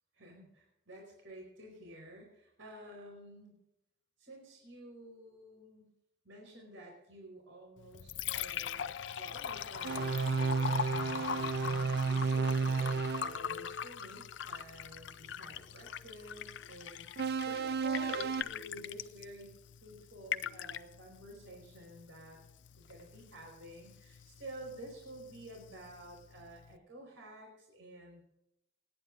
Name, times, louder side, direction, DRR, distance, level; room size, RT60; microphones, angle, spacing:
voice 1, 0.1-3.6 4.2-5.9 6.2-8.9 9.1-19.5 19.8-22.4 22.8-28.2, right 1 dB, 75° right, -1 dB, 4.8 m, -51 dB
Liquid, 7.8-26.8, left 8 dB, 60° left, 0.5 m, -42 dB
sound 1, 9.8-13.3 17.2-18.4, right 5 dB, 55° right, 0.5 m, -32 dB
29.0 x 9.9 x 2.6 m, 0.81 s
head